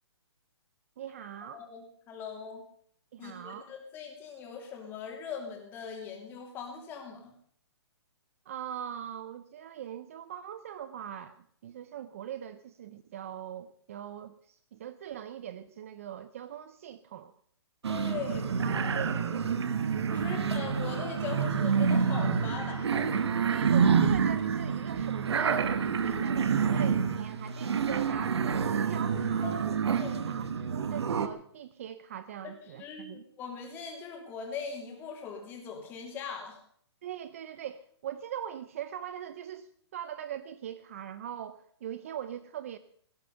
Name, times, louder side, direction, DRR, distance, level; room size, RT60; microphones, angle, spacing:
voice 1, 1.0-1.6 3.1-3.7 8.5-17.3 18.2-18.3 18.6-19.3 20.2-20.4 23.5-29.7 30.2-33.2 37.0-42.8, right 10 dB, 30° right, 14 dB, 0.5 m, -41 dB
voice 2, 1.5-2.6 3.2-7.3 17.9-18.8 20.1-23.1 29.4-29.7 29.9-30.3 32.4-36.6, left 6 dB, 15° left, 2 dB, 2.9 m, -41 dB
sound 1, 17.8-31.3, right 6 dB, 70° right, 1.5 m, -28 dB
17.5 x 10.5 x 6.9 m, 0.62 s
hypercardioid pair, 170°, 15 cm